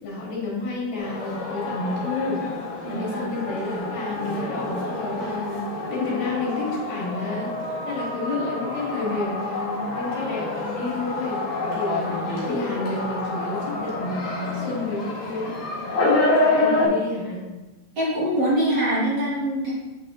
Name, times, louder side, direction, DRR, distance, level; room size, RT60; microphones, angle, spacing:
voice 1, 0.0-2.4 2.9-7.5 7.8-15.5 16.4-17.4, left 2 dB, 90° left, -5 dB, 3.4 m, -30 dB
sound 1, 1.0-16.9, left 2 dB, 65° left, 3.3 m, -28 dB
voice 2, 2.8-3.3 16.6-16.8 18.0-19.7, equal, 40° right, -9 dB, 2.0 m, -24 dB
9.5 x 4.0 x 2.5 m, 1.2 s
omnidirectional pair, 3.9 m